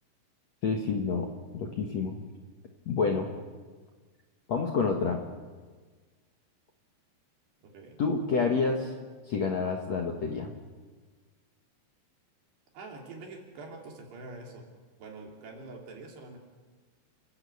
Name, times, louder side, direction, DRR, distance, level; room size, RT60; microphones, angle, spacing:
voice 1, 0.6-1.3 1.5-2.2 2.8-3.3 4.5-5.2 8.0-9.0 9.3-10.5, left 4 dB, 65° left, 2 dB, 1.7 m, -28 dB
voice 2, 7.6-8.0 12.7-14.7 15.0-16.4, right 3 dB, 60° right, 1 dB, 5.3 m, -45 dB
30.0 x 15.0 x 8.5 m, 1.4 s
omnidirectional pair, 5.5 m